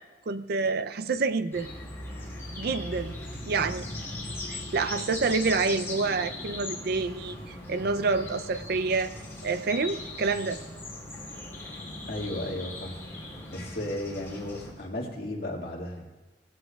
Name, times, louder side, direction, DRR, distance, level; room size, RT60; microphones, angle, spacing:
voice 1, 0.0-1.7 2.5-3.1 3.5-3.9 4.5-9.1 9.4-10.6, right 4 dB, 60° right, 11 dB, 0.5 m, -28 dB
sound 1, 1.5-14.7, left 1 dB, 15° left, 3.6 m, -39 dB
voice 2, 12.1-13.0 13.5-16.1, left 1 dB, 60° left, -1 dB, 2.0 m, -34 dB
19.0 x 15.5 x 2.3 m, 1.2 s
head